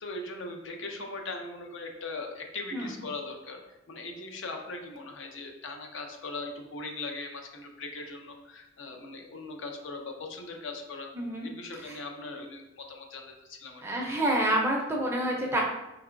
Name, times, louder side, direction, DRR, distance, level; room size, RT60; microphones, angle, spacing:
voice 1, 0.0-11.1 11.4-13.8, left 3 dB, 65° left, 3 dB, 0.6 m, -40 dB
voice 2, 11.2-11.5 11.8-11.9 13.8-15.6, right 1 dB, 10° right, -1 dB, 0.5 m, -28 dB
4.5 x 2.9 x 2.5 m, 0.96 s
head